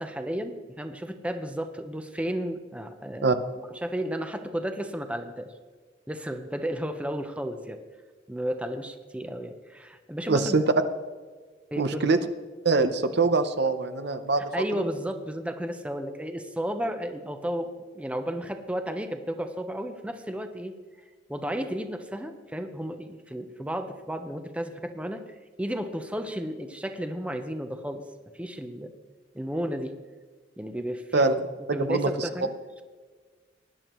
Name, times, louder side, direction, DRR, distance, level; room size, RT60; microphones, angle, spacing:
voice 1, 0.0-3.4 3.7-5.5 6.1-7.8 8.3-10.7 11.7-12.1 14.5-17.7 17.9-20.7 21.3-25.2 25.6-28.0 28.4-28.9 29.3-29.9 30.6-31.3 31.7-32.5, equal, 5° right, 7 dB, 0.7 m, -33 dB
voice 2, 10.3-10.6 11.8-12.2 12.6-14.4 31.1-31.4 31.7-32.1, right 3 dB, 65° right, 10 dB, 0.8 m, -23 dB
20.0 x 10.5 x 3.1 m, 1.4 s
head